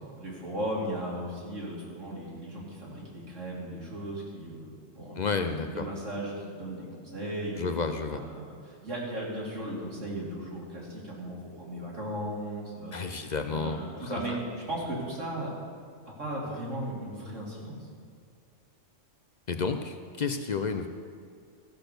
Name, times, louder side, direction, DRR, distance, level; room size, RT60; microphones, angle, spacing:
voice 1, 0.2-4.7 4.9-7.7 8.1-14.3 14.7-15.5 15.8-15.9 16.2-17.8, right 1 dB, 75° right, -5 dB, 3.2 m, -36 dB
voice 2, 5.2-5.9 7.6-8.2 12.9-14.1 19.5-20.9, left 4 dB, 50° left, 7 dB, 0.5 m, -31 dB
14.0 x 6.1 x 6.7 m, 2.3 s
omnidirectional pair, 1.3 m